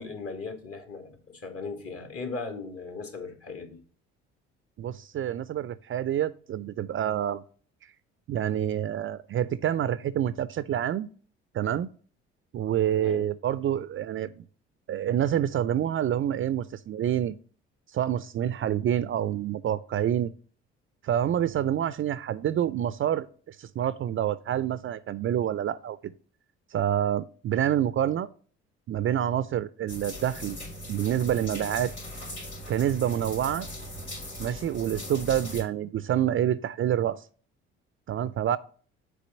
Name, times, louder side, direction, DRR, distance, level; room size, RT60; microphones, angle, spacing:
voice 1, 0.0-3.8 13.0-13.3, left 4 dB, 45° left, 2.0 m, -38 dB
voice 2, 4.8-7.4 8.3-11.1 11.5-11.9 12.5-14.4 14.9-17.4 17.9-20.3 21.0-26.1 26.7-28.3 28.9-30.6 30.9-31.9 32.7-33.7 34.4-37.2 38.1-38.6, right 10 dB, 40° right, 0.4 m, -27 dB
sound 1, 29.9-35.6, equal, 85° left, 3.2 m, -39 dB
6.8 x 3.8 x 6.2 m
hypercardioid pair, 50°, 32 cm